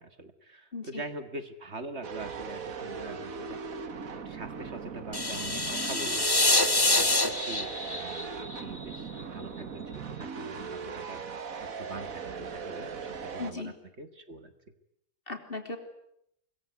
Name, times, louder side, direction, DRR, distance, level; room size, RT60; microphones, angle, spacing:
voice 1, 0.0-3.6 4.3-11.2 11.6-14.5, right 2 dB, 50° right, 9 dB, 2.0 m, -43 dB
voice 2, 0.7-1.0 13.4-13.7 15.3-15.8, left 3 dB, 40° left, 6 dB, 3.6 m, -37 dB
sound 1, 2.0-13.5, right 5 dB, 75° right, 2.0 m, -39 dB
sound 2, 5.1-9.2, left 2 dB, 15° left, 1.5 m, -26 dB
25.0 x 22.5 x 9.7 m, 0.76 s
omnidirectional pair, 1.5 m